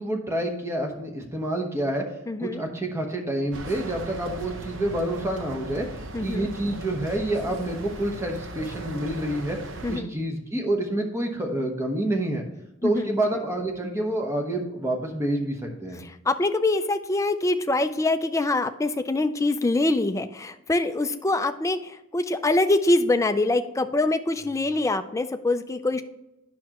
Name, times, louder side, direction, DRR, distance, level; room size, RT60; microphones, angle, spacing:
voice 1, 0.0-2.0 2.4-5.8 6.2-9.6 9.9-12.4 12.8-16.0, right 1 dB, 15° right, 2 dB, 1.1 m, -28 dB
voice 2, 2.3-2.6 6.1-6.5 9.8-10.1 12.8-13.1 16.0-26.0, left 2 dB, 15° left, 9 dB, 0.4 m, -24 dB
sound 1, 3.5-10.0, right 2 dB, 65° right, 0.8 m, -38 dB
9.3 x 6.1 x 2.9 m, 0.91 s
head